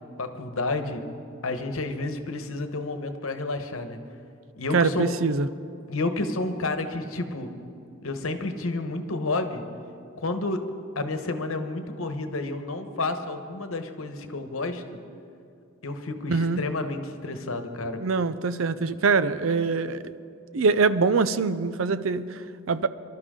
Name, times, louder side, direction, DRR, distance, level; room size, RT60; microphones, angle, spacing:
voice 1, 0.2-1.0 1.4-4.0 4.6-5.1 5.9-7.5 8.0-9.6 10.2-10.6 10.9-15.0 15.8-18.0, left 2 dB, 85° left, 7 dB, 1.1 m, -30 dB
voice 2, 4.7-5.5 16.3-16.6 18.0-20.0 20.5-22.9, right 4 dB, 80° right, 14 dB, 0.6 m, -24 dB
24.0 x 12.5 x 3.8 m, 2.5 s
head